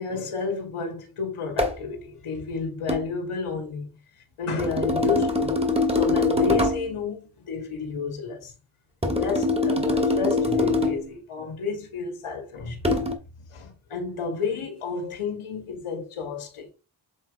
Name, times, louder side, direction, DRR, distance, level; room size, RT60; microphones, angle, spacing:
voice 1, 0.0-3.9 4.4-5.5 5.9-8.5 9.0-13.1 13.5-16.7, left 4 dB, 85° left, 1.8 m, -31 dB
sound 1, 1.6-1.8 2.9-3.1 4.6-6.9 9.0-11.1 12.8-13.1, left 2 dB, 10° right, 2.1 m, -23 dB
7.6 x 3.5 x 4.7 m
cardioid pair, 50°, 49 cm